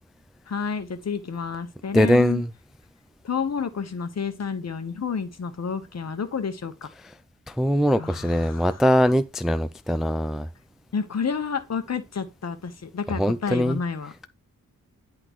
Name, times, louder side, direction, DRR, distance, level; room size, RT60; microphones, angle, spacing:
voice 1, 0.5-2.4 3.2-6.9 8.0-8.7 10.9-14.3, left 6 dB, 50° left, 1.0 m, -30 dB
voice 2, 1.9-2.5 7.5-10.5 13.2-13.8, equal, ahead, 0.3 m, -21 dB
10.0 x 3.8 x 3.1 m
wide cardioid pair, 105°, 33 cm